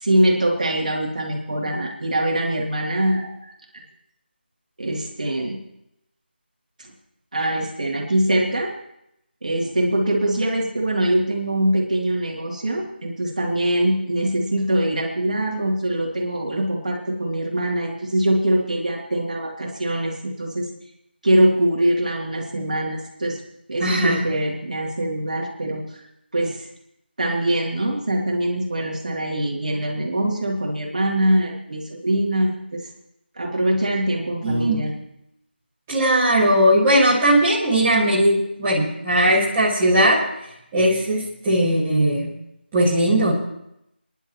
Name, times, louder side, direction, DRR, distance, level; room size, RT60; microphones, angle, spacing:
voice 1, 0.0-3.5 4.8-5.6 6.8-6.9 7.3-8.7 9.4-20.7 21.2-23.4 23.7-25.8 26.3-26.7 27.2-32.9 33.4-34.9, right 1 dB, 45° right, -1 dB, 2.8 m, -23 dB
voice 2, 23.8-24.2 34.4-34.8 35.9-40.2 40.7-42.3 42.7-43.3, right 1 dB, 10° right, -11 dB, 1.9 m, -18 dB
26.5 x 11.0 x 3.1 m, 0.80 s
figure-of-eight pair, 175°, 6 cm